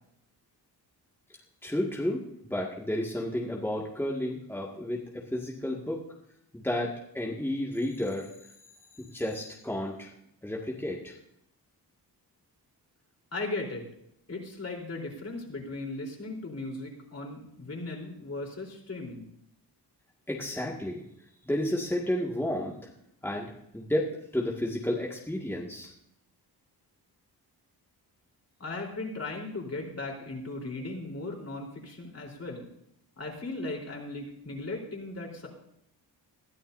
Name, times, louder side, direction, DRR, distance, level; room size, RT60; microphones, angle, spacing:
voice 1, 1.6-5.0 5.3-6.0 6.5-8.3 9.0-10.1 10.4-11.2 20.3-21.0 21.4-22.7 23.2-25.9, left 1 dB, 5° left, -3 dB, 2.0 m, -31 dB
voice 2, 13.3-13.9 14.3-19.3 28.6-32.6 33.2-35.5, left 2 dB, 40° left, 0 dB, 3.9 m, -37 dB
21.5 x 13.0 x 2.7 m, 0.75 s
cardioid pair, 95°, 40 cm